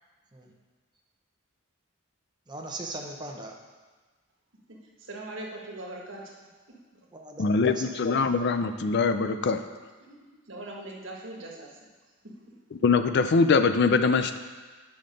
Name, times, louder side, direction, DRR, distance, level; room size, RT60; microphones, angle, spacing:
voice 1, 2.5-3.5 7.1-7.9, right 2 dB, 20° right, 0 dB, 0.9 m, -39 dB
voice 2, 5.1-6.2 10.0-11.7 12.5-12.6, right 2 dB, 65° right, -1 dB, 1.5 m, -40 dB
voice 3, 7.4-9.6 12.7-14.4, left 4 dB, 55° left, 10 dB, 0.5 m, -23 dB
8.6 x 5.7 x 5.2 m, 1.3 s
head